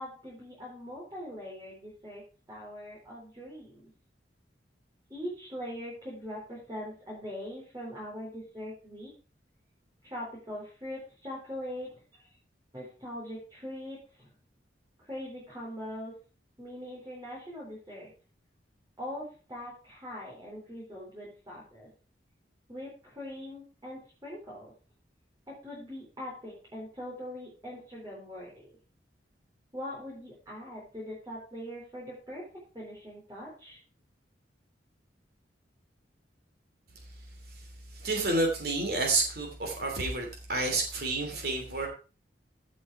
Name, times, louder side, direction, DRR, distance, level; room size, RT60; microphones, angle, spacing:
voice 1, 0.0-2.2 2.5-3.9 5.1-9.1 10.0-12.3 12.7-14.3 15.0-16.1 16.6-18.1 19.0-21.9 22.7-24.7 25.5-28.7 29.7-32.4 32.7-33.8, equal, 20° right, -5 dB, 4.0 m, -42 dB
voice 2, 38.0-41.9, right 2 dB, 55° right, 1 dB, 2.9 m, -29 dB
15.5 x 6.3 x 4.7 m, 0.36 s
head